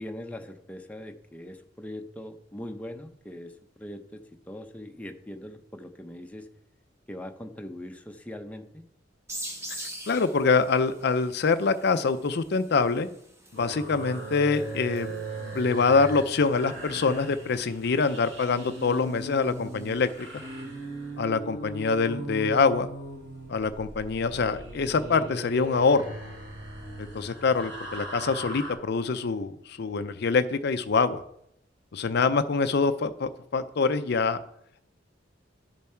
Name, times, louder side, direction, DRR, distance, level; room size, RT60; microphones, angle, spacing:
voice 1, 0.0-6.5 7.1-8.8, left 1 dB, 10° left, 4 dB, 0.8 m, -41 dB
sound 1, 9.3-20.6, right 1 dB, 15° right, 1.5 m, -46 dB
voice 2, 9.7-13.1 13.5-20.3 21.2-22.9 23.5-26.1 27.0-31.2 31.9-34.4, left 4 dB, 60° left, 10 dB, 0.5 m, -25 dB
sound 2, 13.5-28.7, right 2 dB, 70° right, 3.0 m, -39 dB
12.5 x 7.1 x 4.4 m, 0.76 s
head